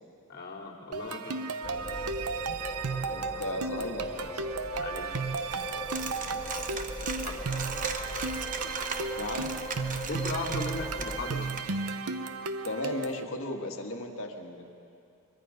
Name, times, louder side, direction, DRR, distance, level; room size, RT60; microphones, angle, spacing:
voice 1, 0.3-1.5 4.8-5.2 6.0-6.1 7.2-7.4 10.0-11.5, left 3 dB, 45° left, -3 dB, 3.0 m, -37 dB
sound 1, 0.9-13.2, right 4 dB, 85° right, 0.8 m, -35 dB
sound 2, 1.6-11.3, left 1 dB, 10° left, 0.9 m, -39 dB
voice 2, 3.1-4.4 9.2-9.5 12.6-14.6, left 1 dB, 65° left, 2 dB, 1.9 m, -35 dB
Coin (dropping), 5.4-11.6, right 5 dB, 35° right, 0.9 m, -39 dB
23.5 x 22.5 x 5.2 m, 2.6 s
head